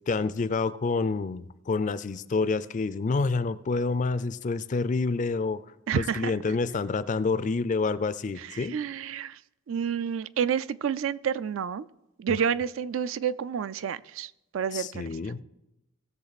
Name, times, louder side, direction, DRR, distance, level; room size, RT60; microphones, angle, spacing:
voice 1, 0.1-5.6 5.9-8.8 12.3-12.4 14.7-15.4, left 4 dB, 35° left, 15 dB, 0.4 m, -28 dB
voice 2, 5.9-6.5 8.4-9.4 9.7-11.9 12.2-15.1, right 7 dB, 65° right, 17 dB, 0.3 m, -29 dB
18.0 x 6.8 x 4.1 m, 0.91 s
head